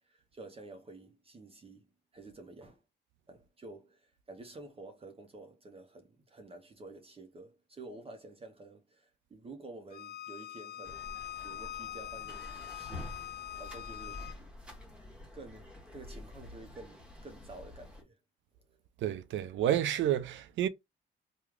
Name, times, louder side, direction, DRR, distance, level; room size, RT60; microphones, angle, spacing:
voice 1, 0.0-2.8 3.3-11.1 11.4-14.3 15.3-18.2 18.7-18.8, right 2 dB, 30° right, 0.7 m, -50 dB
Bowed string instrument, 9.9-14.4, left 12 dB, 55° left, 0.4 m, -43 dB
sound 1, 10.8-18.0, left 2 dB, 5° right, 1.1 m, -48 dB
voice 2, 19.0-20.7, right 11 dB, 70° right, 0.5 m, -30 dB
3.1 x 2.3 x 3.5 m
cardioid pair, 90°, 20 cm